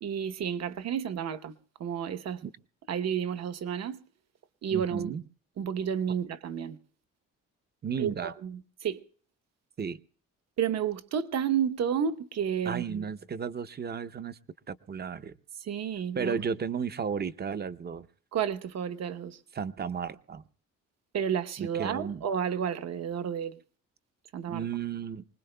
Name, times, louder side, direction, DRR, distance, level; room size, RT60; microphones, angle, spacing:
voice 1, 0.0-1.5 1.8-2.4 2.9-4.0 4.6-5.1 5.6-6.8 8.0-9.0 10.6-13.0 15.6-16.4 18.3-19.4 21.1-23.6 24.3-24.6, right 8 dB, 60° right, 1.0 m, -31 dB
voice 2, 4.7-5.2 7.8-8.3 9.8-10.0 12.6-14.4 14.7-15.3 16.1-18.1 19.5-20.4 21.6-22.2 24.5-25.3, right 6 dB, 35° right, 0.6 m, -34 dB
25.0 x 19.5 x 2.2 m
cardioid pair, 90°, 30 cm